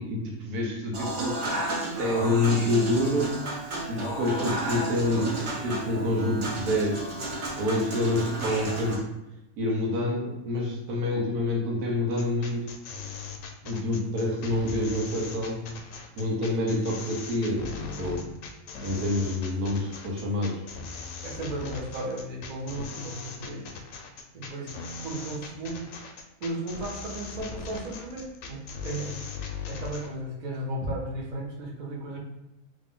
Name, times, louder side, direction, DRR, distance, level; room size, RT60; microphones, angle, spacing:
voice 1, 0.0-1.4 2.0-3.4 3.9-5.3 5.6-7.1 7.6-9.0 9.6-12.7 13.6-15.6 16.2-18.2 18.8-20.6, left 1 dB, 85° right, -2 dB, 1.4 m, -27 dB
Human voice / Acoustic guitar / Piano, 0.9-8.9, right 1 dB, 70° right, 1.4 m, -32 dB
sound 1, 12.1-30.1, left 5 dB, 70° left, 0.9 m, -39 dB
voice 2, 21.2-23.7 24.3-24.8 25.0-25.9 26.4-29.2 29.7-32.2, right 1 dB, 45° right, -2 dB, 0.6 m, -35 dB
3.1 x 2.5 x 3.6 m, 0.91 s
omnidirectional pair, 1.6 m